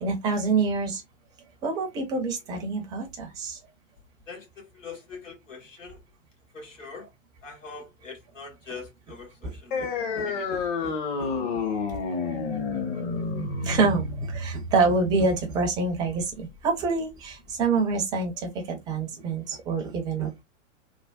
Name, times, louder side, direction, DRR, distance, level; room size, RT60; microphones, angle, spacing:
voice 1, 0.0-1.0 1.6-3.6 9.4-9.5 9.8-9.9 10.1-10.9 11.2-11.3 13.6-20.4, right 4 dB, 10° right, 0.4 m, -27 dB
voice 2, 4.3-6.0 6.5-7.1 7.4-10.5, left 4 dB, 80° left, 1.5 m, -43 dB
sound 1, 9.7-16.7, left 4 dB, 40° left, 0.8 m, -30 dB
3.2 x 2.1 x 2.2 m
figure-of-eight pair, 105°, 38 cm